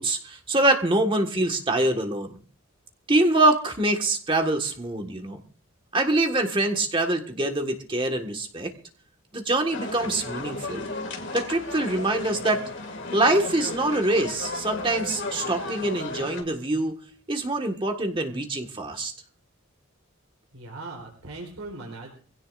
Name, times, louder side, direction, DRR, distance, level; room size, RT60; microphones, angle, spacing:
voice 1, 0.0-2.3 3.1-5.4 5.9-8.7 9.3-10.8 11.3-12.6 13.1-16.9 17.3-19.1, right 2 dB, 25° right, 4 dB, 1.6 m, -24 dB
sound 1, 9.7-16.4, left 2 dB, 55° left, 2.3 m, -34 dB
voice 2, 20.5-22.1, right 2 dB, 80° right, 0 dB, 3.8 m, -39 dB
24.0 x 16.5 x 2.5 m, 0.40 s
head